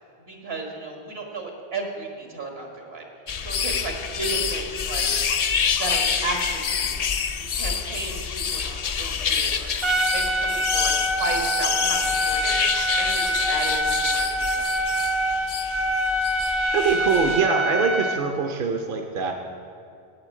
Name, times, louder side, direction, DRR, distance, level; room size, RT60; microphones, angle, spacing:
voice 1, 0.3-3.0 3.4-5.1 5.8-7.1 7.5-9.7 10.1-10.9 11.2-12.6 13.0-14.6 15.0-15.1, right 2 dB, 80° right, 1 dB, 1.9 m, -34 dB
sound 1, 3.3-17.4, left 6 dB, 50° left, 0.5 m, -27 dB
Trumpet, 9.8-18.2, equal, 35° right, 0.6 m, -25 dB
voice 2, 16.7-19.3, right 5 dB, 65° right, 3 dB, 0.9 m, -23 dB
8.8 x 8.6 x 7.4 m, 2.5 s
omnidirectional pair, 1.0 m